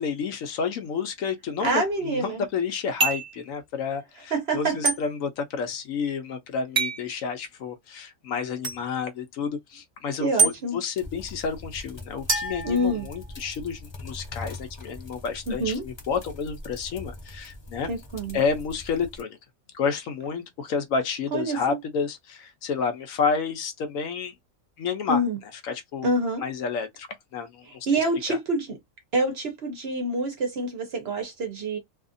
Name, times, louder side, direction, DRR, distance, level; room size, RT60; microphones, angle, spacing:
voice 1, 0.0-17.9 18.3-19.4 19.7-24.3 24.8-25.2 25.6-26.1 26.4-27.1 27.3-27.9 28.3-28.4, left 5 dB, 75° left, 1.0 m, -30 dB
voice 2, 1.6-2.4 4.3-4.9 10.2-10.8 12.6-13.1 15.5-15.8 17.9-18.4 21.3-21.8 25.1-25.4 26.0-26.4 27.7-28.8 29.1-31.8, right 1 dB, 55° right, 0.8 m, -26 dB
sound 1, 3.0-3.4 4.8-5.0 6.7-7.1 8.6-8.8 10.4-10.5 12.3-13.4, right 3 dB, 30° right, 1.0 m, -25 dB
sound 2, 11.0-19.2, left 2 dB, 35° left, 0.4 m, -42 dB
2.7 x 2.4 x 2.5 m
omnidirectional pair, 1.5 m